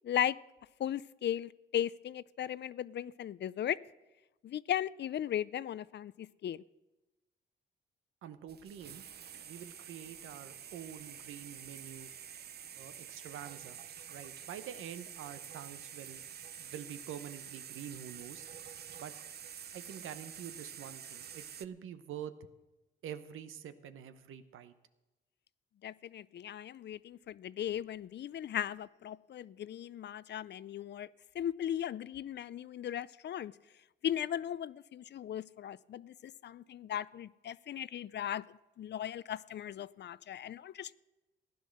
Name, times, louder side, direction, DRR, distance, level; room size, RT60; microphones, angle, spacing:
voice 1, 0.0-0.4 0.8-3.8 4.4-6.6 25.8-31.1 31.4-33.5 34.0-38.4 38.8-40.9, left 10 dB, 60° left, 0.4 m, -37 dB
voice 2, 8.2-9.0 9.4-12.1 12.7-13.8 14.1-16.2 16.6-18.5 19.0-19.1 19.7-22.3 23.0-24.7, right 9 dB, 90° right, 0.8 m, -46 dB
sound 1, 8.5-21.7, right 8 dB, 55° right, 0.6 m, -48 dB
15.0 x 10.5 x 6.4 m
cardioid pair, 70°, 20 cm